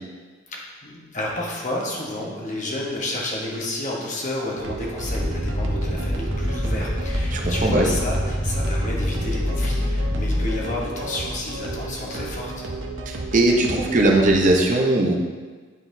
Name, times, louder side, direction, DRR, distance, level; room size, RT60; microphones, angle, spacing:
voice 1, 0.5-12.7, left 1 dB, 40° left, -3 dB, 1.1 m, -31 dB
sound 1, 4.6-14.5, right 2 dB, 80° right, 0.7 m, -33 dB
sound 2, 4.9-10.7, equal, ahead, 0.7 m, -25 dB
voice 2, 7.3-7.9 13.1-15.1, right 2 dB, 40° right, 1 dB, 0.7 m, -19 dB
9.1 x 4.0 x 2.7 m, 1.4 s
head